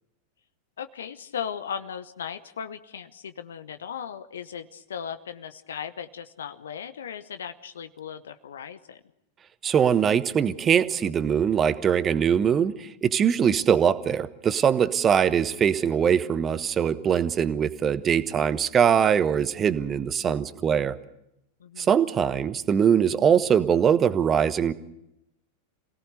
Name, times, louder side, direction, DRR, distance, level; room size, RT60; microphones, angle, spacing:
voice 1, 0.8-9.0 21.6-21.9, left 8 dB, 65° left, 10 dB, 1.0 m, -37 dB
voice 2, 9.6-21.0 21.8-24.7, right 8 dB, 25° right, 14 dB, 1.2 m, -22 dB
27.5 x 18.0 x 6.7 m, 0.84 s
figure-of-eight pair, 90°, 0 cm